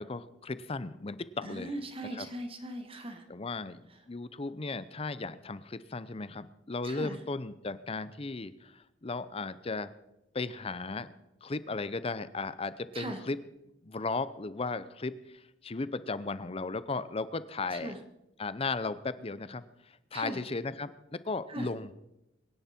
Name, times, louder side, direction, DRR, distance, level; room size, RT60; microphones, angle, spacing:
voice 1, 0.0-1.7 2.1-2.3 3.3-9.9 10.3-11.1 11.4-13.4 13.8-18.0 18.4-21.9, left 3 dB, 30° left, 15 dB, 0.7 m, -36 dB
voice 2, 1.4-3.3 6.8-7.2 12.9-13.2 17.7-18.0 20.1-20.4 21.5-21.7, right 1 dB, 30° right, 6 dB, 1.7 m, -39 dB
23.0 x 10.5 x 4.4 m, 0.91 s
head